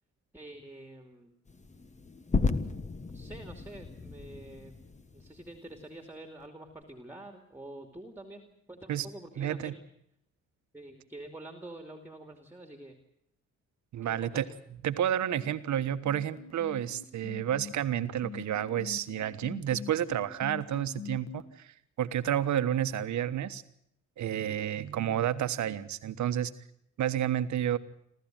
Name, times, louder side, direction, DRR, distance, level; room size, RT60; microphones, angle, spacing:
voice 1, 0.3-1.3 3.1-4.7 5.1-9.8 10.7-13.0 14.0-14.3, right 1 dB, 5° right, 5 dB, 2.5 m, -47 dB
sound 1, 1.5-5.8, left 4 dB, 25° left, 1.4 m, -34 dB
voice 2, 9.4-9.7 13.9-14.4 14.8-23.6 24.2-26.5 27.0-27.8, right 10 dB, 70° right, 11 dB, 1.4 m, -30 dB
sound 2, 15.1-21.4, left 7 dB, 60° left, 2.0 m, -43 dB
28.0 x 13.5 x 9.1 m, 0.72 s
cardioid pair, 90°, 30 cm